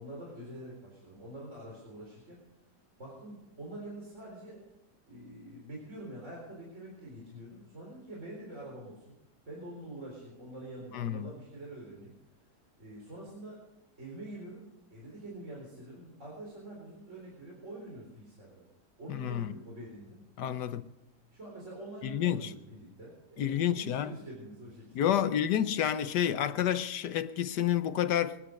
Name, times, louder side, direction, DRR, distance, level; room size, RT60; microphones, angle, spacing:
voice 1, 0.0-2.4 3.0-4.6 5.1-9.1 9.4-12.1 12.8-13.6 14.0-18.7 19.0-20.2 21.3-25.3, right 1 dB, 45° right, 4.4 m, -46 dB
voice 2, 10.9-11.3 19.1-19.5 20.4-20.9 22.0-22.5 23.4-24.1 24.9-28.4, left 10 dB, 85° left, 1.5 m, -29 dB
23.0 x 9.5 x 6.5 m
omnidirectional pair, 1.8 m